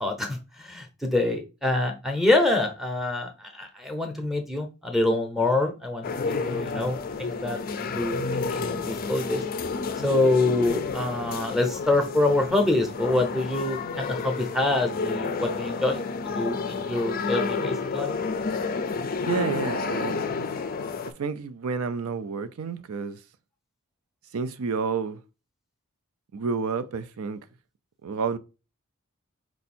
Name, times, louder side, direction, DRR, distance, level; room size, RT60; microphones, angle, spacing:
voice 1, 0.0-9.4 10.0-16.0 16.4-18.1, left 2 dB, ahead, 0.8 m, -26 dB
sound 1, 6.0-21.1, left 4 dB, 40° left, 0.4 m, -30 dB
voice 2, 19.3-20.3 21.2-23.2 24.3-25.2 26.3-27.4 28.0-28.4, right 5 dB, 70° right, 0.5 m, -30 dB
4.5 x 2.7 x 4.2 m
head